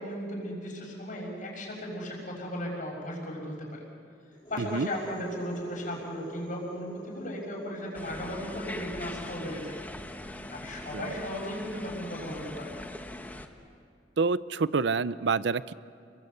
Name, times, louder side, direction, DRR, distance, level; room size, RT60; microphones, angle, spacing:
voice 1, 0.0-3.8 4.5-9.8 10.5-12.8, left 1 dB, 50° left, -1 dB, 6.3 m, -36 dB
sound 1, 4.3-11.9, right 1 dB, 25° left, 2.6 m, -46 dB
voice 2, 4.6-4.9 10.9-11.0 14.2-15.7, right 4 dB, 75° right, 16 dB, 0.6 m, -27 dB
sound 2, 7.9-13.5, left 1 dB, 10° left, 1.4 m, -41 dB
29.5 x 22.5 x 8.1 m, 2.3 s
head